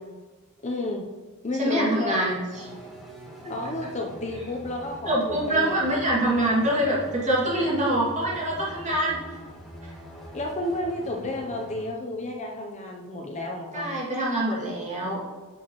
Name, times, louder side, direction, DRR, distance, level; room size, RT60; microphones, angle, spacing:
voice 1, 0.6-1.1 1.4-2.4 3.5-6.0 10.3-14.0, left 2 dB, 30° left, 1 dB, 0.7 m, -31 dB
voice 2, 1.6-2.7 5.1-9.2 13.7-15.2, right 1 dB, 30° right, -5 dB, 2.3 m, -25 dB
sound 1, 2.5-11.9, equal, ahead, 1.5 m, -43 dB
10.0 x 6.1 x 3.1 m, 1.4 s
head